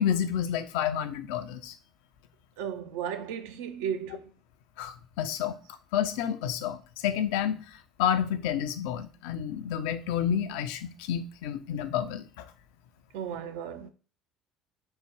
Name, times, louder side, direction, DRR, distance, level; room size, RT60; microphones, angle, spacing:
voice 1, 0.0-1.7 4.8-5.6 5.9-12.5, left 9 dB, 65° left, 0.3 m, -30 dB
voice 2, 2.6-4.3 13.1-13.9, right 8 dB, 65° right, 0.4 m, -35 dB
3.5 x 2.0 x 3.2 m
figure-of-eight pair, 60°, 0 cm